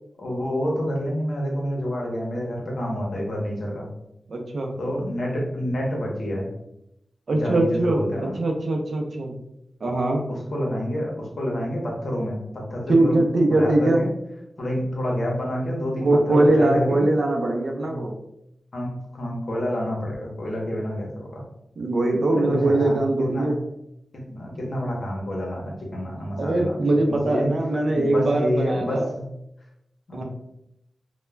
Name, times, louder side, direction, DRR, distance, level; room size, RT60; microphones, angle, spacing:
voice 1, 0.2-3.9 4.8-6.5 7.3-8.4 10.3-14.1 14.6-17.0 17.9-18.1 18.7-21.4 22.3-23.6 24.1-27.5 27.9-29.3 30.1-30.2, equal, 65° left, -2 dB, 0.8 m, -28 dB
voice 2, 4.3-4.7 7.3-9.3 9.8-10.3 12.9-14.0 16.0-18.1 21.8-23.6 26.4-29.1 30.1-30.2, right 2 dB, 65° right, 2 dB, 0.5 m, -21 dB
2.3 x 2.1 x 3.1 m, 0.83 s
wide cardioid pair, 100°, 0 cm